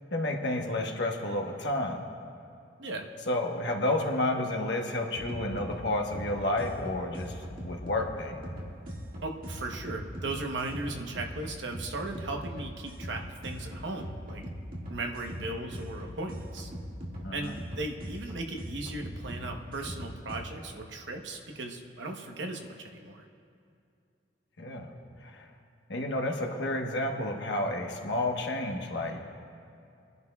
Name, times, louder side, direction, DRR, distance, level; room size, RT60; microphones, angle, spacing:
voice 1, 0.1-2.1 3.3-8.5 17.2-17.5 24.6-24.9 25.2-25.5 25.9-29.2, left 1 dB, 60° left, 1 dB, 1.2 m, -31 dB
sound 1, 5.1-20.4, equal, 50° right, 2.0 m, -41 dB
voice 2, 9.2-14.4 14.9-16.7 17.3-23.2 25.2-25.3, right 2 dB, 70° right, 3 dB, 1.0 m, -37 dB
24.5 x 11.0 x 2.4 m, 2.5 s
head